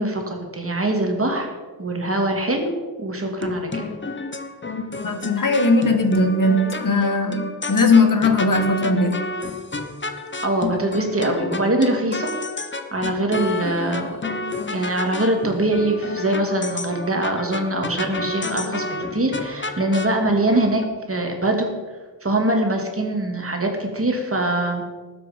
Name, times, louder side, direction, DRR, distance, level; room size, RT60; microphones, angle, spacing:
voice 1, 0.0-1.5 1.8-2.7 3.0-3.9 10.4-12.3 12.9-14.1 14.7-20.8 21.1-21.7 22.2-24.8, right 1 dB, 35° right, 2 dB, 2.5 m, -23 dB
sound 1, 3.4-20.9, left 3 dB, 30° left, 1.0 m, -30 dB
voice 2, 5.0-9.2, left 2 dB, 60° left, 6 dB, 1.6 m, -19 dB
19.0 x 8.1 x 5.2 m, 1.4 s
wide cardioid pair, 120°, 37 cm